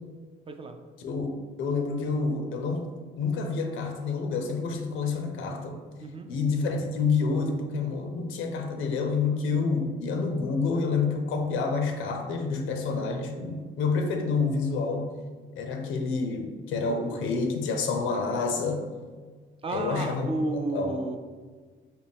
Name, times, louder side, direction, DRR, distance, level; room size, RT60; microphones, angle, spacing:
voice 1, 0.5-0.8 6.0-6.3 19.6-21.2, right 3 dB, 30° right, 6 dB, 0.3 m, -32 dB
voice 2, 1.0-5.8 6.3-15.1 15.6-18.8 19.7-21.0, left 4 dB, 85° left, 4 dB, 0.5 m, -28 dB
4.0 x 2.2 x 3.4 m, 1.5 s
cardioid pair, 90°, 20 cm